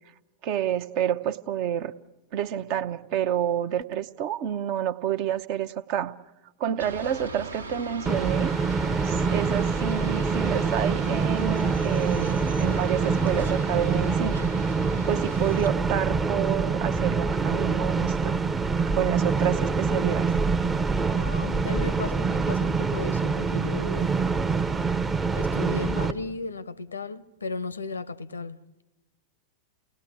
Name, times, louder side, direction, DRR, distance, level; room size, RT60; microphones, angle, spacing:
voice 1, 0.4-1.9 2.3-6.1 6.6-8.5 9.0-14.4 15.1-18.4 18.9-20.3, right 10 dB, 45° right, 0.8 m, -29 dB
sound 1, 6.8-15.7, right 2 dB, 75° right, 1.0 m, -39 dB
sound 2, 8.1-26.1, right 4 dB, 15° right, 0.8 m, -25 dB
voice 2, 21.1-24.1 25.3-28.8, left 3 dB, 75° left, 0.7 m, -35 dB
28.5 x 18.5 x 8.5 m
figure-of-eight pair, 90°, 0 cm